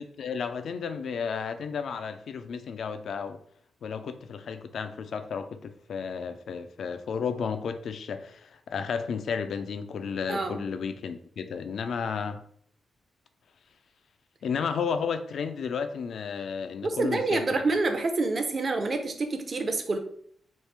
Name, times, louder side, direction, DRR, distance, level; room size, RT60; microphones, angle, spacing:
voice 1, 0.2-3.4 3.8-12.4 14.4-17.6, left 6 dB, 70° left, 9 dB, 0.3 m, -33 dB
voice 2, 10.3-10.6 16.8-20.0, right 3 dB, 45° right, 6 dB, 0.5 m, -27 dB
3.0 x 2.4 x 3.3 m, 0.63 s
cardioid pair, 90°, 0 cm